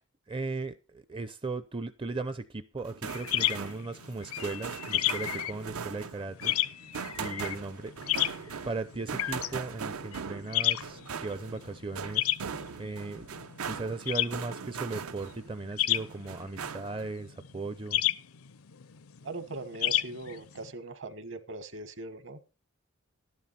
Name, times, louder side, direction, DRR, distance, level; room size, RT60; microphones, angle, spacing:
voice 1, 0.3-6.5 7.1-8.2 8.6-12.3 12.8-13.3 13.6-18.0, right 3 dB, 25° right, 0.5 m, -37 dB
sound 1, 2.8-15.5 15.9-17.1, right 6 dB, 80° right, 0.7 m, -40 dB
sound 2, 3.1-20.7, left 13 dB, 75° left, 0.6 m, -32 dB
voice 2, 19.2-22.4, right 2 dB, 60° right, 1.5 m, -40 dB
12.5 x 11.0 x 4.2 m
head